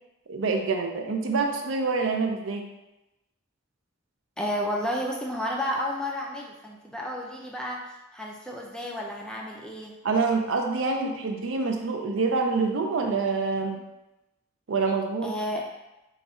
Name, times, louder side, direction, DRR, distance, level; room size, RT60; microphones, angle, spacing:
voice 1, 0.3-2.7 10.0-13.8 14.7-15.3, right 4 dB, 70° right, 3 dB, 0.5 m, -26 dB
voice 2, 4.4-7.9 8.1-9.9 15.2-15.6, equal, 5° left, -1 dB, 0.4 m, -31 dB
4.0 x 2.4 x 4.1 m, 0.97 s
head